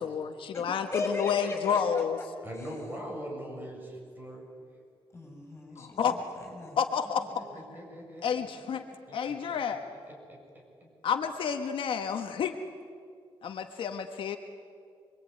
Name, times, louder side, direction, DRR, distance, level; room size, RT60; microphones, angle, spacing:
voice 1, 0.0-2.2 5.8-6.2 6.8-7.3 8.2-8.8 9.1-9.8 11.0-12.6 13.4-14.4, left 7 dB, 65° left, 5 dB, 1.4 m, -30 dB
voice 2, 0.9-2.2 5.1-6.8, left 2 dB, 25° left, 2 dB, 7.4 m, -37 dB
voice 3, 2.4-4.5 7.2-8.5 9.1-9.6 10.1-10.4 10.8-10.9, equal, 20° right, -1 dB, 7.2 m, -42 dB
27.0 x 23.0 x 9.5 m, 2.2 s
wide cardioid pair, 160°, 9 cm